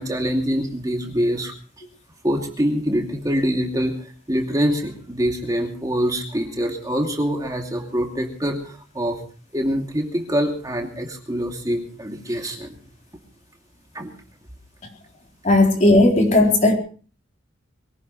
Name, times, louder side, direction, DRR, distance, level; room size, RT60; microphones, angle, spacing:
voice 1, 0.0-1.5 2.2-9.2 9.5-12.8 13.9-14.1, equal, 20° right, 1 dB, 2.7 m, -24 dB
voice 2, 15.4-16.7, left 2 dB, 40° left, 1 dB, 4.1 m, -15 dB
23.5 x 17.5 x 3.2 m, 0.40 s
head